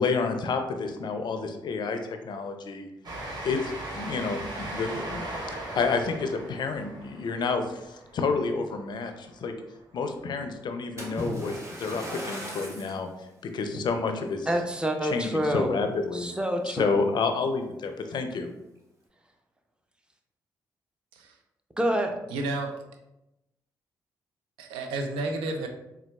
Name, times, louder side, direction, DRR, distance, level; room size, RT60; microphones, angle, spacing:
voice 1, 0.0-2.9 3.4-9.5 9.9-13.1 13.4-14.5 15.0-16.4 16.7-18.5, left 4 dB, 60° left, 7 dB, 0.4 m, -29 dB
Train, 3.0-9.2, right 1 dB, 55° right, 0.7 m, -38 dB
Splash splatter, 11.0-13.0 13.7-13.9 14.5-14.6, equal, 35° right, 1.1 m, -37 dB
voice 2, 14.5-15.8 16.1-17.0 21.8-22.2, equal, 10° right, 4 dB, 0.6 m, -27 dB
voice 3, 22.3-22.7 24.6-25.7, right 2 dB, 90° right, 4 dB, 0.4 m, -31 dB
3.9 x 2.3 x 2.2 m, 0.91 s
supercardioid pair, 50°, 9 cm